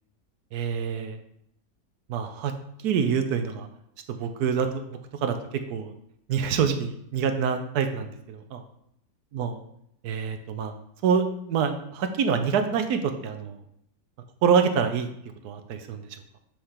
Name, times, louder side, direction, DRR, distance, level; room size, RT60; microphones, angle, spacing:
voice 1, 0.5-1.2 2.1-2.5 2.8-3.7 4.2-4.8 5.2-5.4 5.7-5.9 6.3-8.6 9.3-9.6 10.0-10.7 11.0-13.6 14.4-15.1 15.4-16.0, right 6 dB, 70° right, 7 dB, 1.3 m, -26 dB
8.8 x 3.4 x 5.6 m, 0.74 s
omnidirectional pair, 1.8 m